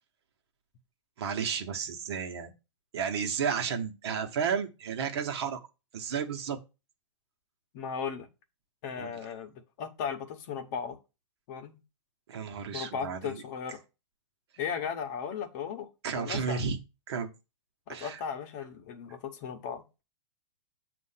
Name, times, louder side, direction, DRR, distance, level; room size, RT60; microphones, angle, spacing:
voice 1, 1.2-2.5 2.9-5.6 5.9-6.6 9.0-9.2 12.3-13.4 16.0-16.8 17.1-17.3 17.9-18.2, right 6 dB, 60° right, 1.1 m, -32 dB
voice 2, 7.7-8.3 8.8-11.0 11.5-11.8 12.7-13.8 14.6-15.9 16.1-16.6 17.9-20.0, left 7 dB, 35° left, 0.9 m, -36 dB
7.4 x 2.6 x 5.6 m
hypercardioid pair, 160°, 16 cm